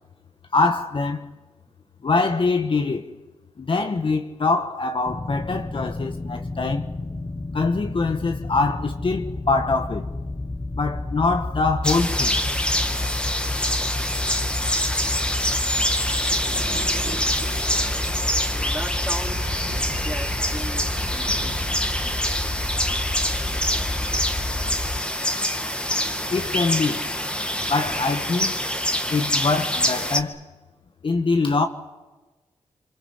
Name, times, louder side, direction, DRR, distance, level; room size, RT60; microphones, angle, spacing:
voice 1, 0.5-1.3 2.0-3.1 3.6-6.9 7.5-10.1 10.8-12.4 26.3-27.1 27.7-28.5 29.1-30.4 31.0-31.7, left 3 dB, 50° left, 1.4 m, -23 dB
sound 1, 5.1-25.0, left 2 dB, 25° left, 1.7 m, -31 dB
sound 2, 11.8-30.2, left 1 dB, 10° left, 2.2 m, -25 dB
sound 3, 15.9-28.2, right 4 dB, 55° right, 2.0 m, -42 dB
voice 2, 18.3-21.7 25.5-25.6, right 1 dB, 10° right, 3.6 m, -39 dB
24.5 x 22.5 x 7.9 m
supercardioid pair, 45°, 12 cm